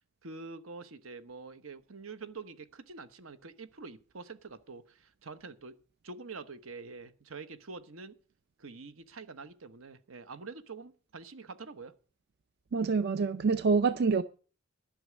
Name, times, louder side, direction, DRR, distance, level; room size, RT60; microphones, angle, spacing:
voice 1, 0.2-5.8 6.0-8.2 8.6-11.9, right 4 dB, 80° right, 1.1 m, -46 dB
voice 2, 12.7-14.2, right 4 dB, 50° right, 0.5 m, -26 dB
11.5 x 6.1 x 9.2 m
head